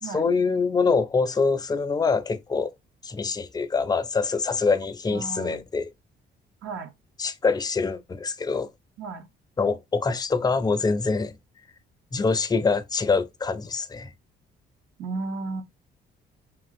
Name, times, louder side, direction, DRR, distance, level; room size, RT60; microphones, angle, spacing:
voice 1, 0.0-2.7 3.0-5.9 7.2-8.7 9.6-11.3 12.1-14.1, left 4 dB, 20° left, 0.4 m, -25 dB
voice 2, 5.1-5.6 6.6-6.9 9.0-9.3 15.0-15.6, right 4 dB, 75° right, 0.6 m, -34 dB
2.9 x 2.5 x 2.4 m
cardioid pair, 90°, 20 cm